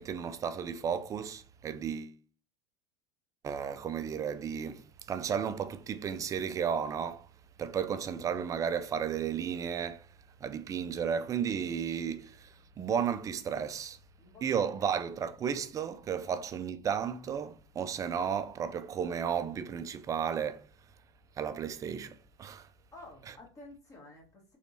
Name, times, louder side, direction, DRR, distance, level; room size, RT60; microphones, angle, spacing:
voice 1, 0.0-2.2 3.4-7.3 7.6-10.1 10.4-14.0 14.4-20.7 21.4-22.7 23.3-23.4, right 7 dB, 25° right, 0.3 m, -33 dB
voice 2, 14.2-14.9 16.3-16.4 22.9-24.6, left 2 dB, 20° left, 1.5 m, -52 dB
3.3 x 3.1 x 2.7 m
supercardioid pair, 130°, 14 cm